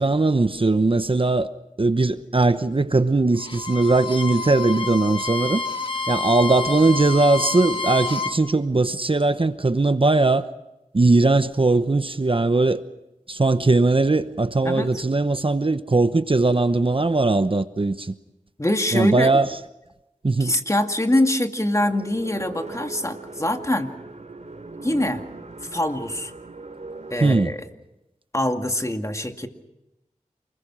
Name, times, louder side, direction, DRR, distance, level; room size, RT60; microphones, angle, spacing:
voice 1, 0.0-1.5 1.8-5.6 6.1-10.5 10.9-12.8 13.3-18.2 18.9-19.5 20.2-20.6 27.2-27.5, right 3 dB, 40° right, 1.0 m, -20 dB
Bowed string instrument, 3.4-8.4, left 3 dB, 40° left, 2.0 m, -29 dB
voice 2, 18.6-19.3 20.4-23.9 24.8-25.2 25.7-26.3 27.1-27.7 28.3-29.5, left 1 dB, 25° left, 2.2 m, -24 dB
sound 1, 21.7-27.4, right 3 dB, 60° right, 2.9 m, -39 dB
28.5 x 21.0 x 6.3 m
cardioid pair, 40°, 13 cm